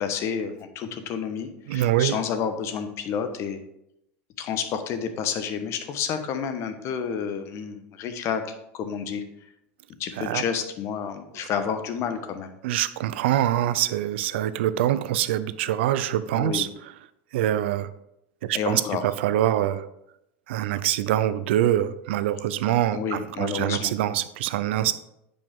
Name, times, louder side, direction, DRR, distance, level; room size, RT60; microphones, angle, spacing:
voice 1, 0.0-3.6 4.4-9.2 10.0-12.6 16.3-16.7 18.5-19.0 22.6-23.9, left 7 dB, 50° left, 8 dB, 1.1 m, -30 dB
voice 2, 1.7-2.2 10.2-10.4 12.6-16.7 17.3-17.9 18.4-19.9 20.5-24.9, right 12 dB, 85° right, 14 dB, 0.5 m, -24 dB
9.5 x 5.4 x 3.7 m, 0.82 s
supercardioid pair, 110°, 6 cm